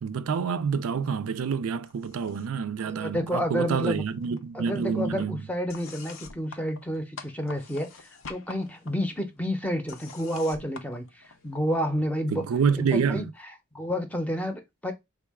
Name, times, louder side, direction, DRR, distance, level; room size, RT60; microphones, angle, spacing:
voice 1, 0.0-5.4 12.3-13.3, right 6 dB, 85° right, 0.4 m, -27 dB
sound 1, 1.9-2.7 2.9-3.9 4.2-11.8, left 5 dB, 65° left, 0.6 m, -48 dB
voice 2, 2.8-4.0 4.5-12.4 12.8-13.2 13.7-14.9, equal, 5° left, 0.6 m, -30 dB
3.5 x 2.3 x 3.4 m
head